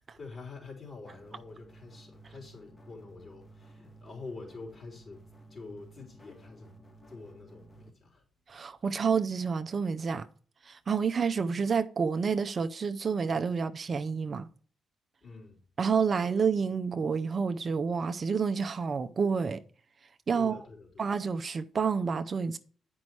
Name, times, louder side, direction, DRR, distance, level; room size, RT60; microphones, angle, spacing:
voice 1, 0.2-5.2 5.5-8.2 15.2-15.6 20.3-20.9, left 3 dB, 45° left, 3.8 m, -46 dB
sound 1, 1.0-7.9, right 2 dB, 25° left, 1.4 m, -54 dB
voice 2, 8.5-10.3 10.6-14.5 15.8-19.6 20.3-20.6 21.0-22.6, right 5 dB, 50° right, 0.5 m, -29 dB
8.5 x 5.3 x 4.6 m
supercardioid pair, 60°, 0 cm